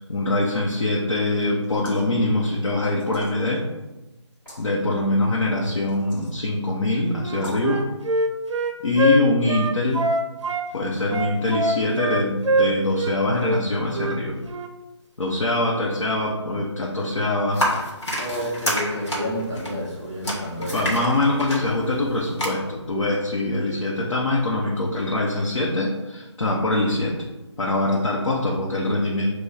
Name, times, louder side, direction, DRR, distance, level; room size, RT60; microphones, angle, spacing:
voice 1, 0.0-3.6 4.6-7.8 8.8-10.1 10.7-14.4 15.2-17.7 20.6-27.2 27.6-29.3, left 2 dB, 85° left, -4 dB, 0.8 m, -23 dB
sound 1, 1.6-2.1 3.0-3.6 4.3-4.6 5.9-6.4 7.3-7.7, right 1 dB, 10° left, 1.4 m, -42 dB
Wind instrument woodwind instrument, 7.2-10.7 11.1-13.2 13.4-13.6 13.9-14.2 14.5-14.7, right 2 dB, 70° right, 0.5 m, -23 dB
sound 2, 17.5-22.5, equal, 65° left, 1.3 m, -28 dB
voice 2, 18.2-20.8, equal, 10° right, -9 dB, 0.4 m, -29 dB
6.1 x 2.3 x 2.7 m, 1.0 s
figure-of-eight pair, 170°, 16 cm